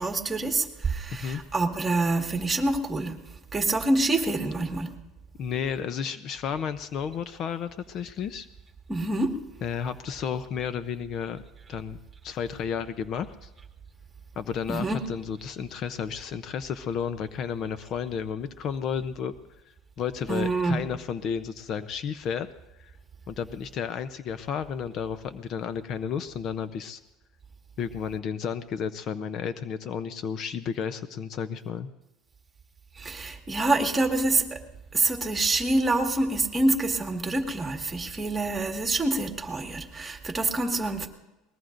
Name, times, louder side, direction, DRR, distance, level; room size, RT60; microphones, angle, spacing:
voice 1, 0.0-5.0 8.9-9.3 14.7-15.0 20.3-20.8 32.9-34.6 34.9-41.1, right 2 dB, 15° right, 3 dB, 1.8 m, -26 dB
voice 2, 1.1-1.4 5.4-8.5 9.6-11.4 11.7-12.0 12.2-13.5 14.4-19.3 20.0-22.5 22.8-22.9 23.3-27.0 27.8-31.9, left 7 dB, 45° left, 12 dB, 0.6 m, -32 dB
22.0 x 20.0 x 2.6 m, 1.0 s
supercardioid pair, 125°, 0 cm